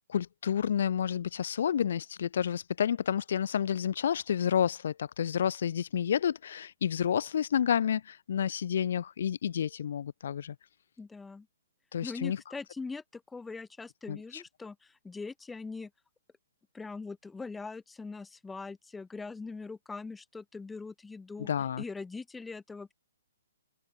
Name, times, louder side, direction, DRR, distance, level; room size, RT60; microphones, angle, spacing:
voice 1, 0.1-10.5 11.9-12.4 14.1-14.4 21.5-21.8, left 8 dB, 55° left, 1.3 m, -30 dB
voice 2, 11.0-11.5 12.0-15.9 16.7-21.5 21.8-22.9, left 4 dB, 5° left, 5.1 m, -42 dB
hypercardioid pair, 160°, 0 cm